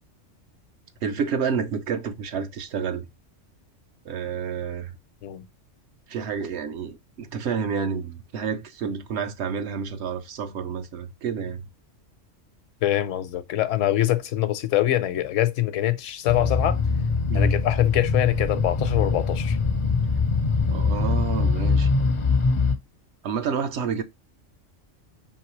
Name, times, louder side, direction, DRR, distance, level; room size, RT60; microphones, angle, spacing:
voice 1, 1.0-3.0 4.0-4.9 6.1-11.6 17.3-17.6 20.7-21.9 23.2-24.0, right 6 dB, 65° right, 0.8 m, -29 dB
voice 2, 12.8-16.8 17.3-19.6, left 14 dB, 85° left, 1.0 m, -24 dB
sound 1, 16.3-22.7, left 4 dB, 50° left, 0.3 m, -23 dB
4.6 x 3.2 x 3.0 m
omnidirectional pair, 1.3 m